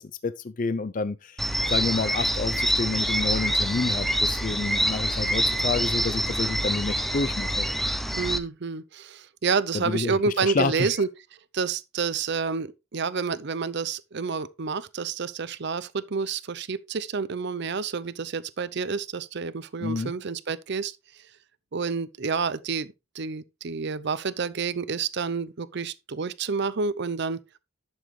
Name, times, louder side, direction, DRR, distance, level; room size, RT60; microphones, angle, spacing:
voice 1, 0.0-1.4 1.7-7.9 9.7-10.9 19.8-20.1, left 3 dB, 40° left, 0.5 m, -29 dB
sound 1, 1.4-8.4, equal, ahead, 0.7 m, -26 dB
voice 2, 8.2-11.1 11.5-21.0 21.7-27.4, right 5 dB, 55° right, 0.6 m, -29 dB
11.5 x 7.1 x 3.2 m
head